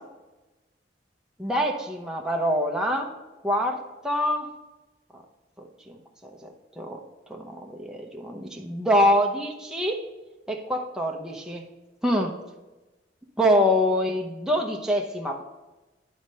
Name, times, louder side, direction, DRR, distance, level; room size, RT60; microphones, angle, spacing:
voice 1, 1.4-3.1 3.4-3.8 4.0-4.5 5.9-6.0 6.8-7.0 7.3-10.0 10.5-11.6 12.0-12.3 13.4-15.4, equal, 5° right, 0 dB, 0.8 m, -25 dB
9.3 x 4.3 x 5.4 m, 1.1 s
head